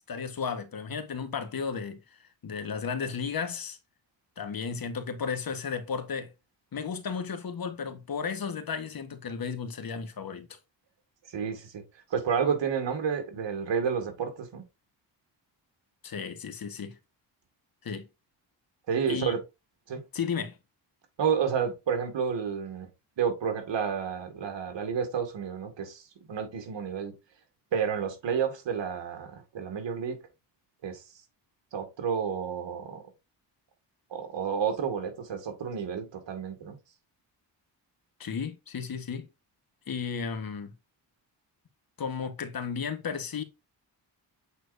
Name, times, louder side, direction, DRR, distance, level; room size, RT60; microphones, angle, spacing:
voice 1, 0.1-3.8 4.4-6.3 6.7-10.6 16.0-17.0 17.8-18.1 19.1-19.3 20.1-20.6 38.2-39.3 39.9-40.7 42.0-43.4, left 6 dB, 50° left, 1.4 m, -34 dB
voice 2, 11.3-11.8 12.1-14.6 18.9-19.4 19.9-20.0 21.2-22.9 23.2-27.1 27.7-30.2 30.8-31.0 31.7-33.0 34.1-36.8, right 7 dB, 75° right, 2.1 m, -30 dB
8.3 x 4.4 x 2.6 m
cardioid pair, 70°, 45 cm